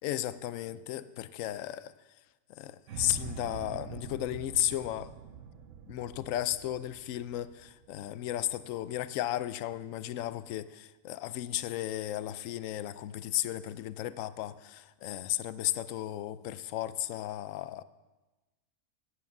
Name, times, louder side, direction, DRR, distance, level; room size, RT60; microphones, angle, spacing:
voice 1, 0.0-1.9 2.5-5.1 5.9-17.8, left 13 dB, 75° left, 15 dB, 1.0 m, -34 dB
sound 1, 2.9-9.0, right 7 dB, 70° right, 1.1 m, -45 dB
14.5 x 9.6 x 6.0 m, 1.2 s
omnidirectional pair, 1.4 m